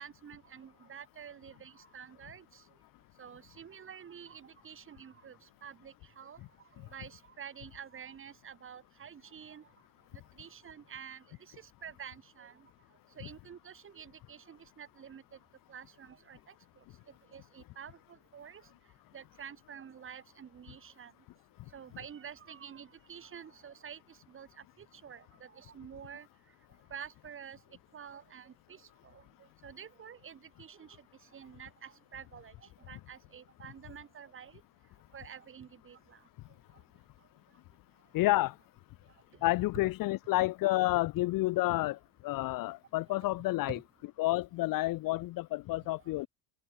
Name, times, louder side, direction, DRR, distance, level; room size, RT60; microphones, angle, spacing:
voice 1, 0.0-2.6 3.2-6.4 6.8-9.7 10.1-12.7 13.2-15.2 15.7-16.8 17.3-18.7 19.1-21.1 21.7-26.3 26.9-27.6 27.9-29.2 29.6-34.6 35.1-36.2 39.5-39.6 43.7-43.8, right 8 dB, 25° right, 3.9 m, -49 dB
voice 2, 38.1-38.6 39.4-43.8 44.2-46.3, left 18 dB, 45° left, 1.0 m, -30 dB
cardioid pair, 140°, 47 cm